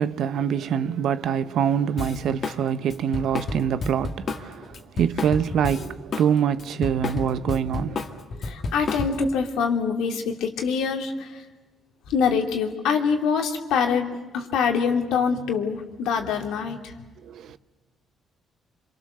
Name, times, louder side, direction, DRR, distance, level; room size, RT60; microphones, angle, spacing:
voice 1, 0.0-8.2 17.2-17.6, right 8 dB, 70° right, 0.9 m, -25 dB
Drum kit, 2.0-2.6 2.9-6.3 6.6-9.3, left 4 dB, 50° left, 2.1 m, -31 dB
voice 2, 8.4-11.4 12.1-16.8, left 6 dB, 90° left, 2.7 m, -24 dB
29.5 x 26.0 x 6.8 m
cardioid pair, 90°, 0 cm